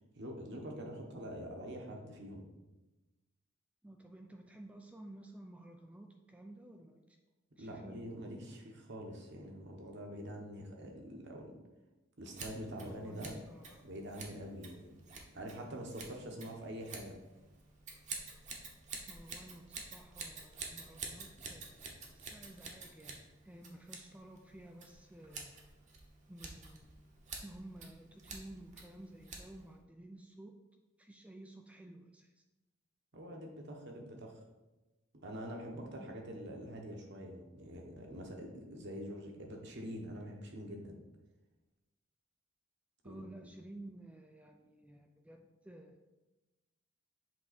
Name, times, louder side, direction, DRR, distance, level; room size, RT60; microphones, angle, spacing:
voice 1, 0.1-2.5 7.6-11.5 12.2-13.3 13.8-14.9 15.3-17.1 33.1-34.3 35.2-40.9 43.0-43.2, equal, 55° right, 1 dB, 1.1 m, -45 dB
voice 2, 3.8-7.2 7.6-8.1 12.8-13.9 19.1-25.6 26.3-26.9 27.4-30.6 31.0-32.4 43.0-46.0, right 1 dB, 5° right, 3 dB, 0.4 m, -53 dB
Scissors, 12.3-29.8, right 4 dB, 35° right, 0.9 m, -49 dB
7.8 x 3.5 x 4.1 m, 1.1 s
head